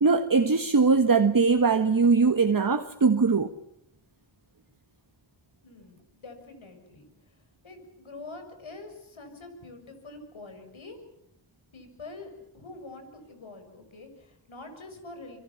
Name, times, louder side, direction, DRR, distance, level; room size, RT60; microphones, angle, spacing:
voice 1, 0.0-3.5, right 4 dB, 45° right, 1.6 m, -21 dB
voice 2, 5.6-7.4 7.6-11.0 11.7-15.4, left 2 dB, 75° left, 6.8 m, -45 dB
26.0 x 23.0 x 7.2 m
cardioid pair, 40°, 48 cm